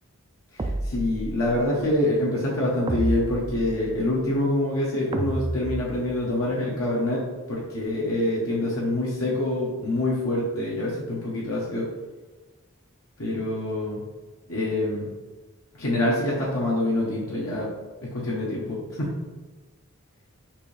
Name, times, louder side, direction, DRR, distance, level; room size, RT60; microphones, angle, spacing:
voice 1, 0.5-11.9 13.2-14.0 14.5-15.1 15.8-17.7 18.0-19.1, left 1 dB, 70° left, -5 dB, 1.0 m, -26 dB
sound 1, 0.6-1.7 2.9-4.1 5.1-6.4, right 2 dB, 20° right, 0.3 m, -31 dB
5.9 x 2.7 x 3.3 m, 1.3 s
head